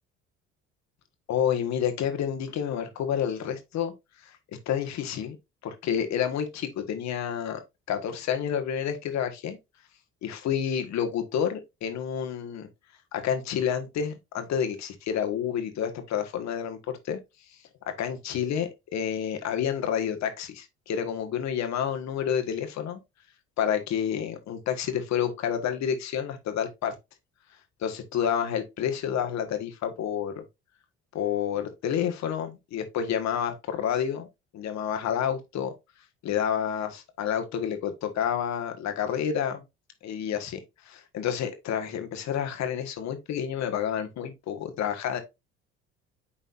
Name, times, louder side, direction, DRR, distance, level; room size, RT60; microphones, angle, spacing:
voice 1, 1.3-3.9 4.2-5.4 5.6-7.6 7.9-9.6 10.2-12.7 13.1-17.2 17.8-23.0 23.6-26.9 27.8-30.4 31.1-34.3 34.5-35.7 36.2-39.6 40.0-40.6 40.8-45.2, left 8 dB, 60° left, 1.6 m, -29 dB
9.9 x 4.0 x 2.6 m
hypercardioid pair, 65°, 30 cm